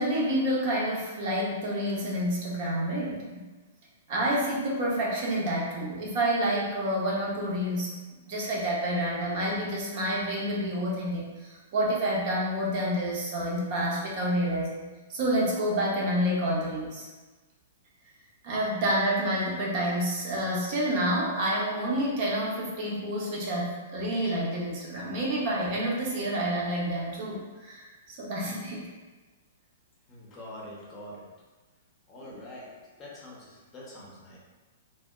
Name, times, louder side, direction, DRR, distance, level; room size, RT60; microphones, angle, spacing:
voice 1, 0.0-3.5 4.1-7.9 8.3-17.1 18.4-28.9 32.3-32.4, right 1 dB, 45° right, -4 dB, 0.6 m, -28 dB
voice 2, 30.1-31.3 32.1-32.7 33.0-34.4, left 1 dB, 25° left, -5 dB, 0.6 m, -44 dB
2.7 x 2.1 x 2.2 m, 1.2 s
figure-of-eight pair, 110°, 0 cm